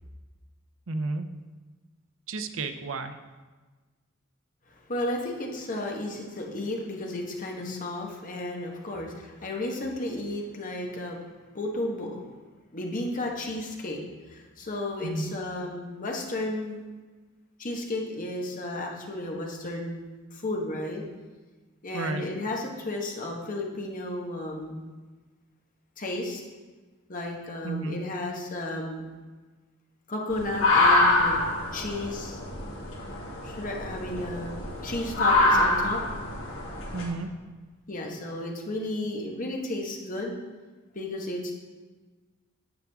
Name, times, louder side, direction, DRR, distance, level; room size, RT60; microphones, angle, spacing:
voice 1, 0.9-1.3 2.3-3.1 15.0-15.3 21.9-22.2 27.6-28.0 36.9-37.3, right 3 dB, 85° right, 9 dB, 0.6 m, -31 dB
voice 2, 4.9-11.2 11.5-12.2 12.7-14.0 14.3-16.8 17.6-20.0 20.3-21.0 21.8-24.8 26.0-26.4 27.1-29.0 30.1-31.4 31.7-32.4 33.4-36.0 37.9-40.4 40.9-41.5, left 1 dB, 45° left, 0 dB, 1.3 m, -33 dB
sound 1, 30.3-37.0, left 2 dB, 85° left, 2.2 m, -25 dB
9.8 x 7.1 x 3.5 m, 1.3 s
head